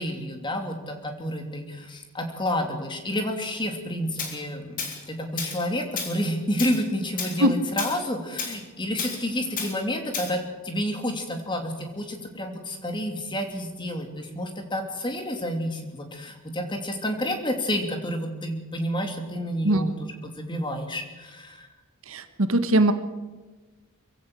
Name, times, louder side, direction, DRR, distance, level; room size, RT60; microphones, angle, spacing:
voice 1, 0.0-21.7, equal, 20° left, 4 dB, 2.9 m, -30 dB
Tools, 4.2-4.4 4.8-5.0 5.4-5.6 6.0-6.2 6.6-6.8 7.2-7.4 7.8-8.0 8.4-8.6 9.0-9.2 9.6-9.7 10.1-10.3, left 5 dB, 40° left, 3.8 m, -32 dB
voice 2, 22.1-22.9, right 1 dB, 65° right, 9 dB, 1.5 m, -21 dB
23.5 x 16.0 x 7.9 m, 1.2 s
head